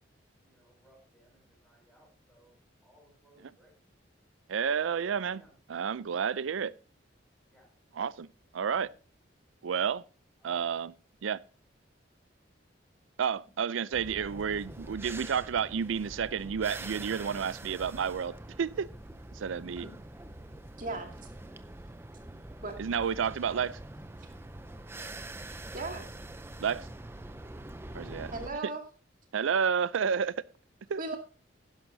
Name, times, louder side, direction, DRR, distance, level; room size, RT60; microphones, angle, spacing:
voice 1, 0.4-3.7 5.2-5.5 7.5-7.7 10.4-10.7, right 1 dB, 10° left, 6.7 m, -62 dB
voice 2, 4.5-5.4 5.7-6.7 7.9-8.3 8.5-8.9 9.6-10.0 10.4-10.9 11.2-11.4 13.2-18.9 19.3-19.9 22.8-23.8 26.6-26.9 27.9-28.3 29.3-30.3 30.9-31.2, right 7 dB, 85° right, 0.4 m, -30 dB
sound 1, 13.9-28.5, right 2 dB, 10° right, 0.5 m, -45 dB
voice 3, 20.8-21.3 22.6-22.7 25.0-25.1 25.7-26.1 28.3-28.8 31.0-31.2, right 3 dB, 45° right, 2.2 m, -37 dB
11.5 x 10.5 x 2.7 m
head